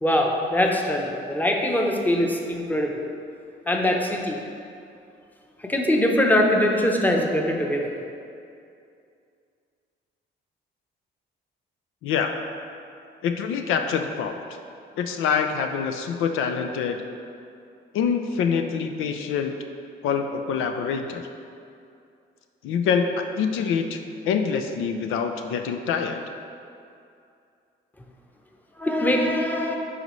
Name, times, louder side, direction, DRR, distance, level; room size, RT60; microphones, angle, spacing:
voice 1, 0.0-3.0 3.7-4.4 5.6-7.9 28.8-29.8, left 1 dB, 10° left, 1 dB, 0.8 m, -22 dB
voice 2, 12.0-12.4 13.2-14.4 15.0-17.0 17.9-19.5 20.0-21.2 22.6-24.0 24.2-26.2, left 6 dB, 90° left, 6 dB, 0.5 m, -25 dB
10.5 x 4.0 x 3.1 m, 2.5 s
cardioid pair, 90°, 20 cm